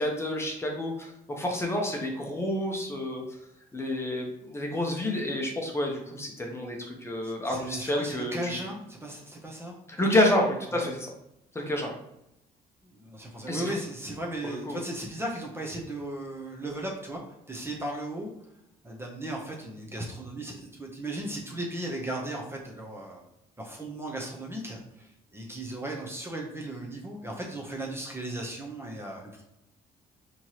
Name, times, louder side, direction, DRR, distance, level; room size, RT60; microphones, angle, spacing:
voice 1, 0.0-3.2 3.7-8.6 9.9-11.0 11.5-11.9 13.5-13.8 14.4-14.8, left 1 dB, 15° left, 0 dB, 0.8 m, -29 dB
voice 2, 7.2-10.2 10.7-10.8 12.8-17.2 17.5-18.3 18.8-23.2 23.6-29.4, right 1 dB, 15° right, -1 dB, 0.7 m, -36 dB
4.4 x 3.0 x 2.9 m, 0.83 s
cardioid pair, 110°, 17 cm